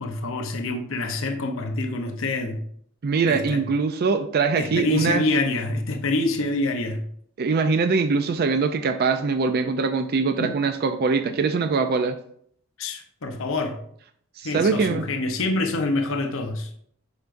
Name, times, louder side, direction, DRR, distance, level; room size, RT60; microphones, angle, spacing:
voice 1, 0.0-2.6 3.3-3.6 4.6-7.0 10.4-10.5 12.8-13.8 14.4-16.7, left 2 dB, 65° left, 0.7 m, -26 dB
voice 2, 3.0-5.2 7.4-12.2 14.4-15.1, right 4 dB, 45° right, 0.4 m, -22 dB
8.0 x 5.7 x 2.6 m
head